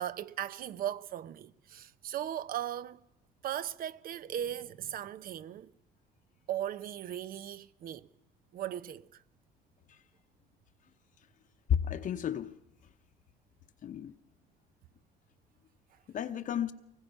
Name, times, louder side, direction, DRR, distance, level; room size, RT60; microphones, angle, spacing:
voice 1, 0.0-3.0 3.4-5.7 6.5-8.1 8.5-9.2, right 11 dB, 60° right, 0.8 m, -38 dB
voice 2, 11.7-12.5 13.8-14.1 16.1-16.7, left 9 dB, 50° left, 0.9 m, -32 dB
24.0 x 20.0 x 5.5 m
cardioid pair, 110°, 17 cm